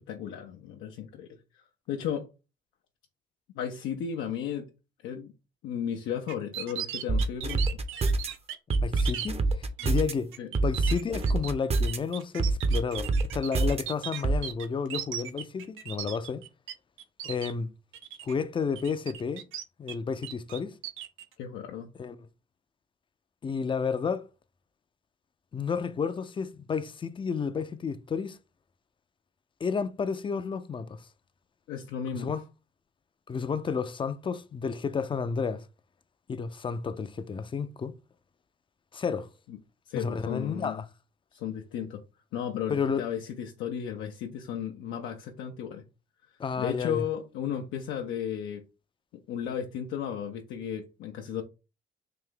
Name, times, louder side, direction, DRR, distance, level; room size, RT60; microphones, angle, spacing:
voice 1, 0.1-1.3 1.5-2.3 3.6-4.7 5.0-5.3 5.6-7.8 10.4-10.5 21.4-21.9 31.7-32.4 39.5-39.6 39.9-40.8 41.3-42.0 42.3-45.8 46.5-48.6 49.3-51.4, left 8 dB, 85° left, 0.5 m, -34 dB
sound 1, 6.3-9.3 9.8-10.0 10.3-16.7 17.0-17.5 17.9-18.3 18.7-19.9 20.2-21.2, right 10 dB, 90° right, 0.5 m, -38 dB
sound 2, 7.1-8.3 8.7-10.1 10.5-12.0 12.4-13.8 14.2-14.4, right 3 dB, 30° right, 0.6 m, -25 dB
voice 2, 8.8-10.3 10.6-16.4 17.2-17.7 18.2-19.5 19.8-20.8 22.0-22.2 23.4-24.3 25.5-28.4 29.6-31.1 32.1-32.4 33.3-35.7 36.3-37.9 38.9-39.3 39.9-40.9 42.7-43.1 46.4-47.0, left 5 dB, 25° left, 0.4 m, -31 dB
3.4 x 2.6 x 3.6 m
cardioid pair, 90°, 20 cm